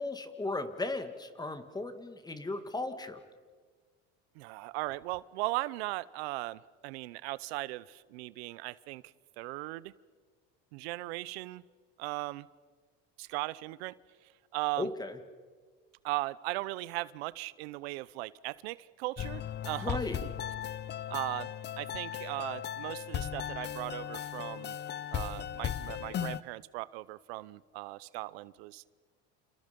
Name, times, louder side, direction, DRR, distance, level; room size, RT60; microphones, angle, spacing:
voice 1, 0.0-3.2 14.8-15.2 19.8-20.2, left 2 dB, 15° left, 9 dB, 2.1 m, -36 dB
voice 2, 4.3-9.9 10.7-11.6 12.0-12.5 13.2-14.0 14.5-14.9 16.0-20.0 21.1-21.5 21.8-24.7 25.1-28.8, right 20 dB, 90° right, 19 dB, 0.8 m, -38 dB
sound 1, 19.2-26.4, left 10 dB, 35° left, 0.8 m, -37 dB
29.5 x 28.5 x 5.3 m, 1.5 s
supercardioid pair, 115°, 30 cm